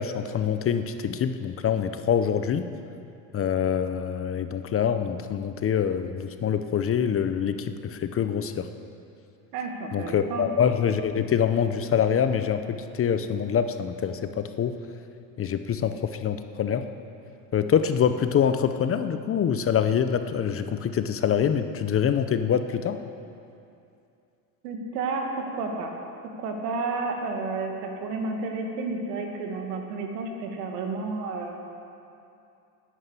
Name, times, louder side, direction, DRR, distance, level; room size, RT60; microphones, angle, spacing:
voice 1, 0.0-2.7 3.3-8.7 9.9-14.8 15.4-16.9 17.5-23.0, left 8 dB, 30° left, 9 dB, 0.7 m, -25 dB
voice 2, 9.5-10.5 24.6-25.9 26.4-31.6, right 3 dB, 85° right, 2 dB, 2.1 m, -31 dB
10.5 x 9.8 x 8.2 m, 2.6 s
supercardioid pair, 105°, 46 cm